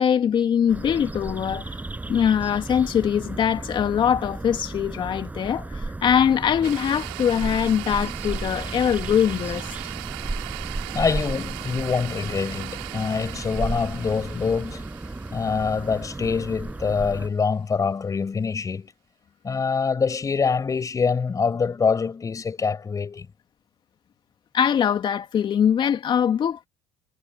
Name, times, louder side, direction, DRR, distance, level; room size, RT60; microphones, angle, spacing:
voice 1, 0.0-1.7 2.1-9.7 24.5-26.7, left 8 dB, 45° left, 2.6 m, -22 dB
sound 1, 0.7-17.3, right 2 dB, 15° right, 8.0 m, -34 dB
sound 2, 6.6-16.9, right 28 dB, 85° right, 4.5 m, -39 dB
voice 2, 10.9-14.9 15.3-18.9 19.4-23.3, left 5 dB, 30° left, 6.0 m, -25 dB
supercardioid pair, 80°, 11 cm